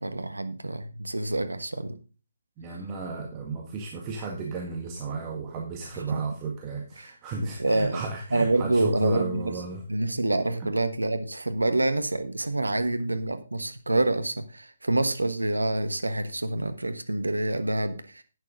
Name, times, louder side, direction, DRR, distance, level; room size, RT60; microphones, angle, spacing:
voice 1, 0.0-2.0 6.1-6.2 7.0-7.1 7.6-8.0 8.3-9.5 9.9-18.2, right 2 dB, 80° right, 9 dB, 1.3 m, -27 dB
voice 2, 2.6-9.8 10.6-10.7, right 4 dB, 25° right, 0 dB, 1.8 m, -34 dB
11.0 x 9.1 x 3.9 m, 0.34 s
figure-of-eight pair, 140°, 0 cm